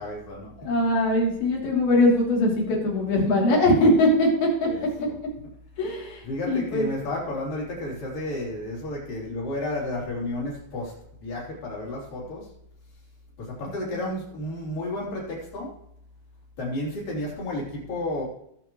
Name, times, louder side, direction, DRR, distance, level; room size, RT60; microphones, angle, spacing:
voice 1, 0.0-0.5 4.6-5.2 6.2-12.5 13.4-15.8 16.6-18.3, left 1 dB, 60° left, -4 dB, 4.9 m, -32 dB
voice 2, 0.6-4.7 5.0-5.1 5.8-6.9, left 1 dB, 85° left, -3 dB, 5.0 m, -21 dB
20.5 x 7.0 x 3.1 m, 0.73 s
omnidirectional pair, 4.3 m